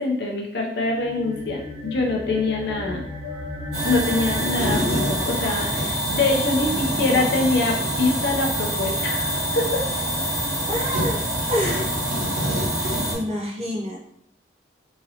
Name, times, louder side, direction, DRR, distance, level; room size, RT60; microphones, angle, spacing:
voice 1, 0.0-3.0 3.8-9.8, left 2 dB, 60° left, 0 dB, 0.6 m, -24 dB
sound 1, 0.7-7.4, left 1 dB, 20° left, 1.1 m, -35 dB
sound 2, 3.7-13.1, equal, 60° right, 1.2 m, -25 dB
voice 2, 6.6-7.5 10.7-11.2 11.5-11.9 12.7-14.1, equal, 35° right, -2 dB, 0.4 m, -29 dB
2.9 x 2.6 x 2.8 m, 0.69 s
head